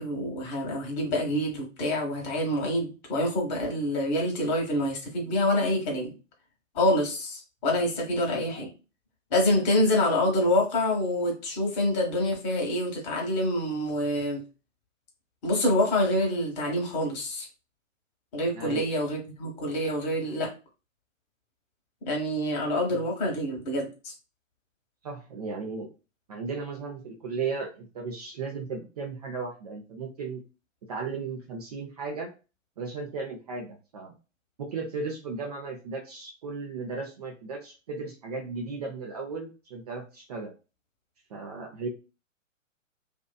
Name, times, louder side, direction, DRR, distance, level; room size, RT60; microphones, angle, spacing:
voice 1, 0.0-6.1 6.7-8.7 9.3-14.4 15.4-17.5 18.3-20.5 22.1-24.1, left 1 dB, 35° left, 1 dB, 1.1 m, -26 dB
voice 2, 18.5-18.9 22.9-23.0 25.0-25.9 26.3-30.4 30.9-32.3 32.8-34.1 34.6-40.5 41.3-41.9, right 4 dB, 30° right, 0 dB, 0.4 m, -35 dB
2.6 x 2.4 x 2.3 m, 0.31 s
figure-of-eight pair, 120°, 39 cm